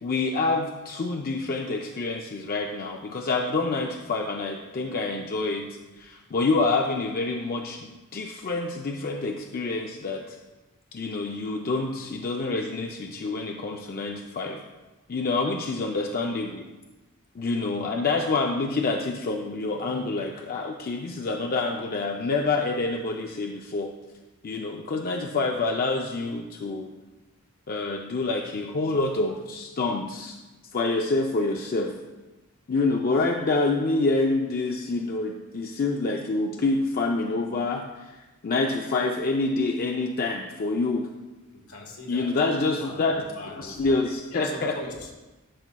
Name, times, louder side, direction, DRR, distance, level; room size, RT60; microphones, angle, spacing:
voice 1, 0.0-10.4 10.9-14.6 15.1-16.6 17.3-23.9 24.4-26.9 27.7-30.4 30.7-31.9 32.7-41.1 42.1-43.2 43.6-44.7, left 3 dB, 40° left, 2 dB, 0.5 m, -27 dB
voice 2, 41.5-44.0 44.3-45.1, left 2 dB, 75° left, 0 dB, 1.5 m, -41 dB
12.0 x 6.0 x 2.2 m, 1.1 s
head